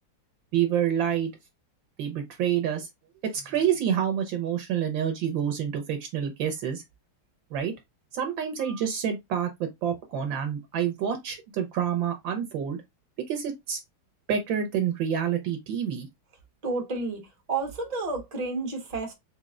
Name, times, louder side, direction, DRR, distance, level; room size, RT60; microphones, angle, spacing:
voice 1, 0.5-1.3 2.0-2.9 3.3-6.8 7.5-7.7 8.1-12.8 13.3-13.8 14.3-16.1, right 9 dB, 75° right, 1.5 m, -28 dB
voice 2, 16.6-17.2 17.5-19.1, right 3 dB, 25° right, 1.0 m, -30 dB
4.1 x 3.6 x 2.4 m
omnidirectional pair, 2.1 m